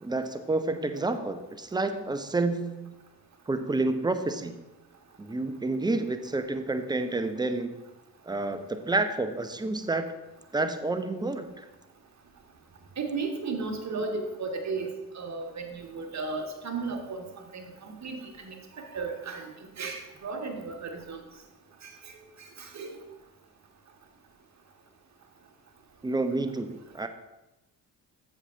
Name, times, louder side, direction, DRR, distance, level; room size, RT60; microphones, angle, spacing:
voice 1, 0.0-2.9 3.5-4.6 5.2-7.8 8.2-10.1 10.5-11.7 26.0-27.1, right 2 dB, 10° right, 9 dB, 0.7 m, -29 dB
voice 2, 13.0-19.5 19.8-21.2 21.8-21.9 22.4-22.9, right 4 dB, 35° right, 3 dB, 1.6 m, -35 dB
14.0 x 5.7 x 2.7 m, 1.0 s
figure-of-eight pair, 40°, 50 cm